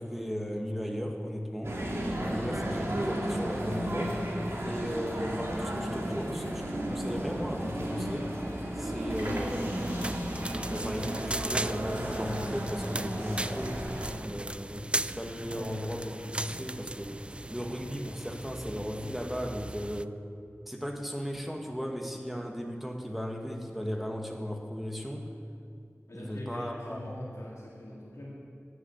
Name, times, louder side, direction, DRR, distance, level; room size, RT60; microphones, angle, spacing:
voice 1, 0.0-1.7 2.2-4.2 4.6-8.3 8.7-10.2 10.7-13.9 14.2-14.8 15.2-17.2 17.5-20.2 20.7-25.3 26.1-27.2, equal, 5° right, 2 dB, 1.4 m, -36 dB
sound 1, 1.6-14.1, right 1 dB, 65° right, 2.2 m, -33 dB
sound 2, 9.1-20.0, right 1 dB, 20° right, 0.3 m, -38 dB
voice 2, 15.5-16.3 26.1-28.3, left 1 dB, 90° left, -7 dB, 2.3 m, -43 dB
11.0 x 8.2 x 8.6 m, 2.4 s
wide cardioid pair, 55°, 5 cm